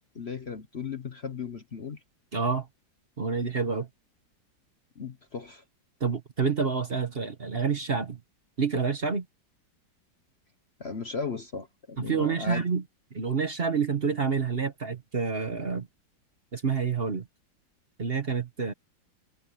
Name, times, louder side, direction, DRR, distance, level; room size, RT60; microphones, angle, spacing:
voice 1, 0.1-2.0 4.9-5.6 10.8-12.6, left 5 dB, 40° left, 1.2 m, -36 dB
voice 2, 2.3-2.7 3.2-3.9 6.0-8.2 8.6-9.2 12.0-12.8 13.1-15.9 16.5-17.3 18.0-18.7, right 5 dB, 35° right, 1.2 m, -28 dB
omnidirectional pair, 2.0 m